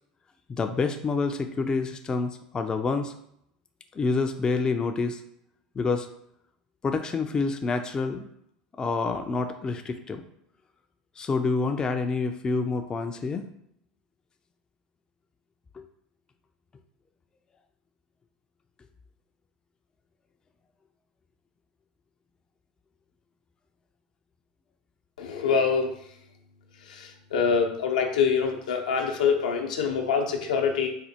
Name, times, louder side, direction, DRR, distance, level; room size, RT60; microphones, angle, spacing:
voice 1, 0.5-3.1 3.9-5.2 5.8-6.1 6.8-8.3 8.8-10.2 11.2-13.5 15.7-15.8, left 4 dB, 20° left, 6 dB, 0.3 m, -27 dB
voice 2, 25.2-25.9 26.9-30.9, left 6 dB, 85° left, 3 dB, 0.6 m, -25 dB
4.2 x 2.1 x 2.8 m, 0.72 s
hypercardioid pair, 95°, 4 cm